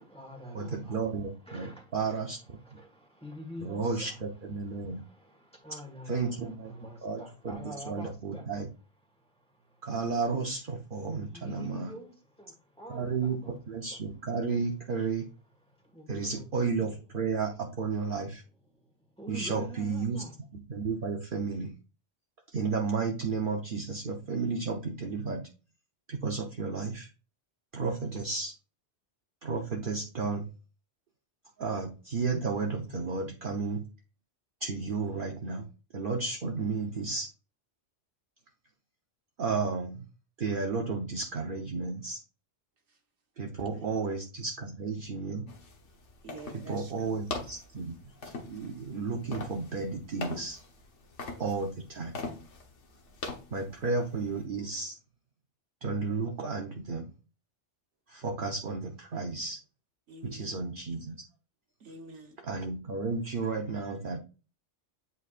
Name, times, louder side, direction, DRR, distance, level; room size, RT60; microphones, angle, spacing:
voice 1, 0.0-1.2 1.4-2.2 2.5-8.5 9.0-9.9 11.2-13.6 13.9-14.0 15.7-16.5 16.8-17.0 18.7-20.3, equal, 5° left, 1.5 m, -47 dB
voice 2, 0.5-2.6 3.6-5.0 6.1-6.7 7.0-8.7 9.8-11.9 12.9-15.3 16.1-18.4 19.3-20.2 20.7-21.7 22.5-25.4 26.1-27.1 27.7-28.5 29.4-30.5 31.6-33.8 34.6-35.7 35.9-37.3 39.4-40.0 40.4-42.2 43.4-45.4 46.7-48.0 48.2-50.6 51.4-52.2 53.5-54.9 55.8-57.1 58.1-59.6 60.2-61.2 62.5-64.2, right 4 dB, 50° right, 0.9 m, -33 dB
sound 1, 45.5-54.4, left 3 dB, 85° left, 1.4 m, -43 dB
voice 3, 46.2-47.3 60.1-60.5 61.8-62.4, right 2 dB, 75° right, 1.5 m, -47 dB
8.3 x 4.6 x 2.5 m
omnidirectional pair, 1.2 m